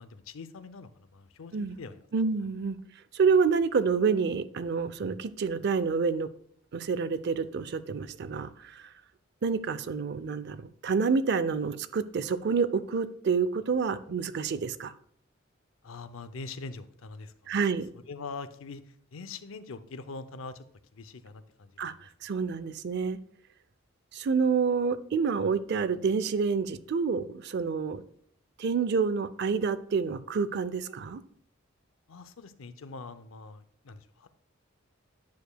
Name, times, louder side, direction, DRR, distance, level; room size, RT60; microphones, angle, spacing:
voice 1, 0.0-2.0 15.8-17.5 18.1-20.6 20.9-22.1 32.1-34.3, left 4 dB, 85° left, 12 dB, 0.6 m, -43 dB
voice 2, 2.1-2.8 3.1-6.3 6.7-8.9 9.4-14.9 17.5-17.9 21.8-21.9 22.2-23.2 24.1-28.0 28.6-31.2, right 5 dB, 55° right, 14 dB, 0.4 m, -28 dB
9.4 x 6.8 x 2.2 m, 0.63 s
head